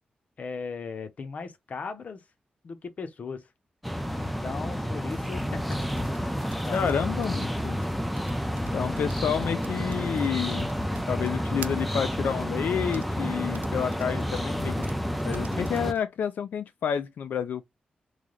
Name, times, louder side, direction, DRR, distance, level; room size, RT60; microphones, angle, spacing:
voice 1, 0.4-2.2 2.6-3.5 4.2-5.8 6.7-7.6, left 4 dB, 55° left, 0.7 m, -38 dB
sound 1, 3.8-15.9, equal, ahead, 0.5 m, -30 dB
sound 2, 4.8-12.0 12.7-13.1 13.5-14.4 14.8-14.9 15.2-16.0, right 6 dB, 80° right, 0.4 m, -46 dB
voice 2, 6.7-7.8 8.7-10.7 11.1-14.9 15.2-17.7, left 8 dB, 90° left, 0.4 m, -29 dB
3.2 x 2.2 x 3.9 m
wide cardioid pair, 100°, 3 cm